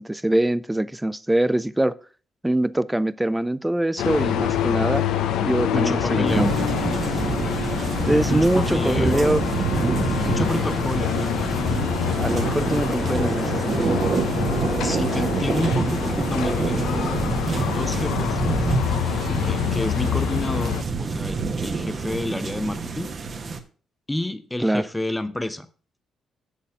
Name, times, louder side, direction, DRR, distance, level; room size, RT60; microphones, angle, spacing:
voice 1, 0.0-2.0 2.4-5.0 5.4-6.5 8.0-9.4 12.2-13.9 24.6-24.8, right 1 dB, 10° right, 0.4 m, -23 dB
sound 1, 4.0-20.8, left 10 dB, 85° left, 0.7 m, -26 dB
voice 2, 5.7-6.6 7.5-7.7 8.3-9.4 10.2-11.2 14.8-17.2 17.7-18.4 19.4-23.1 24.1-25.7, left 1 dB, 10° left, 0.8 m, -29 dB
sound 2, 6.3-23.6, right 4 dB, 40° right, 1.2 m, -26 dB
7.1 x 6.6 x 5.5 m
cardioid pair, 90°, 0 cm